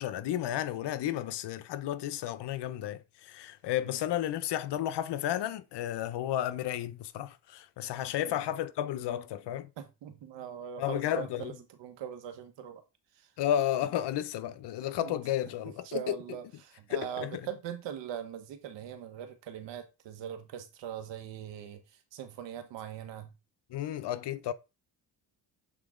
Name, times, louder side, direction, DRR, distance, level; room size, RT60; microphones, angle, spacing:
voice 1, 0.0-9.7 10.8-11.5 13.4-16.1 16.9-17.4 23.7-24.5, left 11 dB, 70° left, 0.9 m, -32 dB
voice 2, 9.8-11.5 11.8-12.8 13.2-13.3 15.0-15.1 15.8-21.8 22.1-23.3, right 9 dB, 85° right, 1.4 m, -41 dB
7.6 x 4.0 x 3.8 m
cardioid pair, 100°, 42 cm